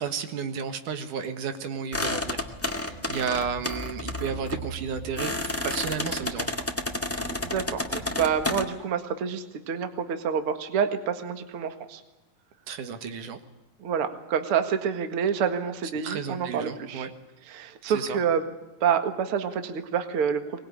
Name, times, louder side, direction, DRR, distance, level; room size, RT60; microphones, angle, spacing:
voice 1, 0.0-2.4 2.7-6.5 12.7-13.4 16.0-17.1 17.9-18.2, right 6 dB, 80° right, 8 dB, 3.1 m, -32 dB
sound 1, 1.9-8.7, left 1 dB, 5° left, 1.2 m, -31 dB
voice 2, 7.4-12.0 13.8-17.1 17.5-18.4 18.8-20.6, right 7 dB, 50° right, 8 dB, 2.4 m, -28 dB
23.5 x 20.0 x 9.8 m, 1.0 s
omnidirectional pair, 3.5 m